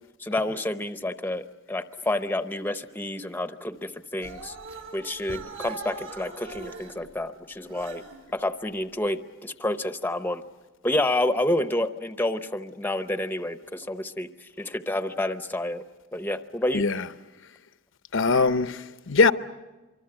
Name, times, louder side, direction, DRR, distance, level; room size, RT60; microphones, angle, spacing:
voice 1, 0.2-4.5 4.9-8.0 8.3-10.4 10.8-15.8 16.1-16.8, left 1 dB, 10° left, 0.7 m, -29 dB
sound 1, 4.2-6.9 7.6-8.2, right 4 dB, 70° right, 4.7 m, -40 dB
voice 2, 16.7-17.0 18.1-19.3, left 4 dB, 65° left, 0.8 m, -21 dB
25.0 x 25.0 x 7.8 m
head